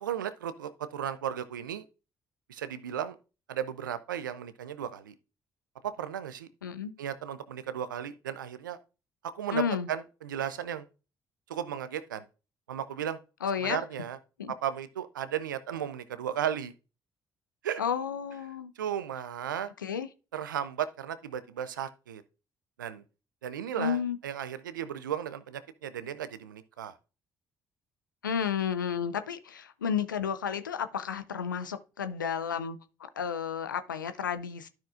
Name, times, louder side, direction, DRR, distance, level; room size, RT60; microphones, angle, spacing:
voice 1, 0.0-1.8 2.5-3.2 3.5-5.1 5.8-6.5 7.0-8.8 9.3-10.9 11.5-12.2 12.7-13.2 13.6-14.2 14.5-16.7 17.6-17.8 18.8-19.7 20.3-22.2 22.8-23.0 23.4-27.0, right 9 dB, 85° right, 0.5 m, -35 dB
voice 2, 6.6-6.9 9.5-9.9 13.4-13.8 14.4-14.5 17.8-18.7 19.8-20.1 23.8-24.2 28.2-34.7, left 7 dB, 90° left, 0.5 m, -32 dB
12.5 x 5.8 x 2.4 m
hypercardioid pair, 45°, 10 cm